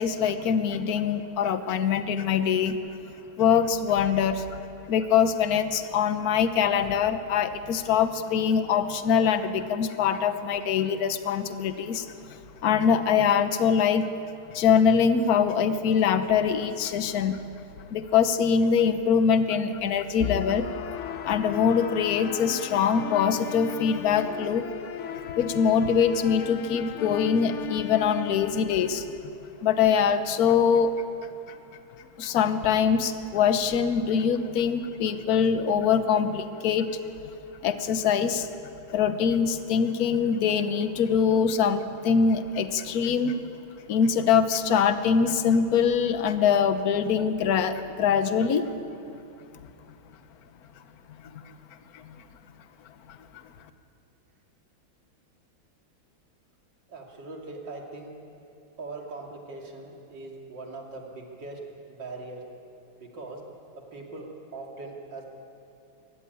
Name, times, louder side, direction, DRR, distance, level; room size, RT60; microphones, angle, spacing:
voice 1, 0.0-2.8 3.4-4.4 4.9-12.1 12.6-14.1 14.5-17.4 17.9-20.7 21.2-24.7 25.4-29.0 29.6-30.9 31.5-31.6 32.2-36.9 37.6-38.5 38.9-43.4 43.9-48.7 51.9-52.0, left 7 dB, 55° left, 10 dB, 1.3 m, -23 dB
sound 1, 20.2-29.2, left 10 dB, 90° left, 0.6 m, -36 dB
voice 2, 56.9-58.1 58.8-61.6 61.9-62.4 63.0-63.4 63.9-65.3, right 3 dB, 60° right, 0 dB, 3.3 m, -40 dB
23.5 x 14.0 x 9.5 m, 2.7 s
omnidirectional pair, 2.2 m